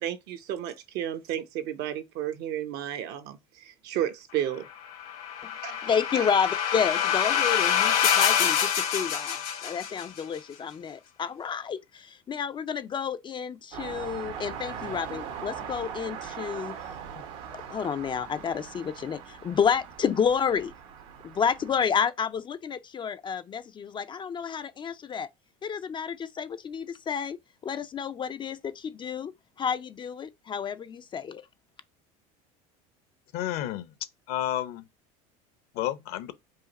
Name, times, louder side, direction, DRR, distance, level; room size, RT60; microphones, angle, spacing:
voice 1, 0.0-4.7 5.6-5.9 6.1-6.2 7.5-7.6, right 11 dB, 60° right, 0.8 m, -33 dB
sound 1, 4.9-10.2, left 9 dB, 90° left, 1.9 m, -26 dB
voice 2, 5.8-9.4 9.6-16.7 17.7-20.7 21.2-25.3 25.6-27.4 27.6-29.3 29.6-31.4, left 7 dB, 25° left, 0.4 m, -30 dB
sound 2, 13.7-21.9, right 8 dB, 75° right, 1.2 m, -40 dB
voice 3, 33.3-33.9 34.3-34.9 35.7-36.3, left 12 dB, 60° left, 0.7 m, -31 dB
4.8 x 2.5 x 4.1 m
supercardioid pair, 105°, 18 cm